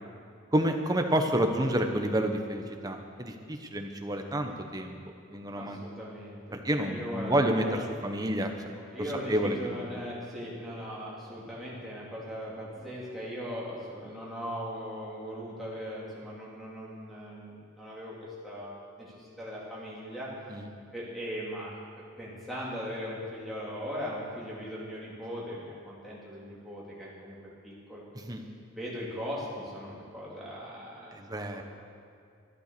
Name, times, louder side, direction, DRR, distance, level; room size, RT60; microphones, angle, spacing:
voice 1, 0.5-5.0 5.3-5.8 6.5-8.5 9.3-10.0 20.5-20.7 28.1-28.4 31.1-31.6, right 1 dB, 20° right, 4 dB, 0.9 m, -29 dB
voice 2, 5.5-7.8 8.8-18.1 18.4-20.3 20.9-21.8 22.2-27.3 27.6-28.0 28.7-31.6, equal, ahead, -8 dB, 3.2 m, -39 dB
12.0 x 11.5 x 6.7 m, 2.4 s
head